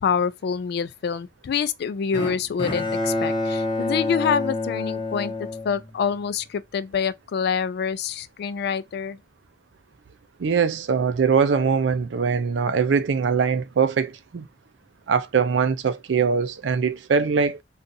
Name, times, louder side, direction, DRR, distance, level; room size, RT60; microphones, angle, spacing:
voice 1, 0.0-9.2, left 6 dB, 60° left, 0.3 m, -26 dB
Bowed string instrument, 2.1-6.4, left 2 dB, 25° left, 0.8 m, -28 dB
voice 2, 10.4-14.5 15.1-17.6, right 6 dB, 75° right, 0.4 m, -22 dB
2.7 x 2.4 x 3.8 m
head